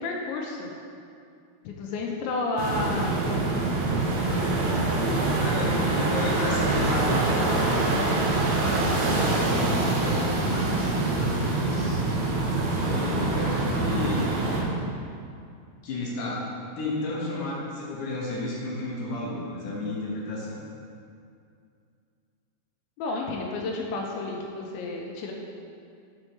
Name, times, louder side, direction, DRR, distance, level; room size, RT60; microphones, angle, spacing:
voice 1, 0.0-0.7 1.7-3.6 23.0-25.3, left 2 dB, 80° left, -1 dB, 2.2 m, -31 dB
sound 1, 2.6-14.6, right 2 dB, 85° right, 3.0 m, -25 dB
voice 2, 5.4-7.8 8.5-12.0 12.8-14.4 15.8-16.4 16.8-20.6, left 2 dB, 65° left, -5 dB, 2.2 m, -33 dB
7.8 x 4.4 x 4.5 m, 2.4 s
omnidirectional pair, 4.7 m